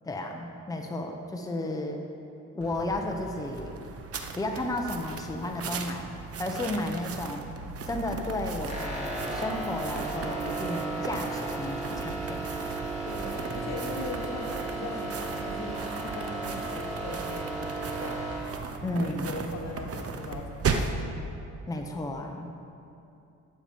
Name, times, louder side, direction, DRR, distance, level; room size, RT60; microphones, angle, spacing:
voice 1, 0.0-2.0 2.5-3.7 4.3-6.1 6.4-7.5 7.9-12.5 18.8-19.3 21.7-22.5, left 1 dB, 10° left, 2 dB, 1.0 m, -33 dB
sound 1, 2.6-21.0, right 4 dB, 50° right, 0.9 m, -37 dB
sound 2, 8.7-18.4, right 3 dB, 20° right, 2.8 m, -35 dB
voice 2, 13.0-18.4 18.8-21.1, left 2 dB, 60° left, 2 dB, 1.4 m, -40 dB
13.0 x 7.0 x 5.2 m, 2.7 s
cardioid pair, 90°, 30 cm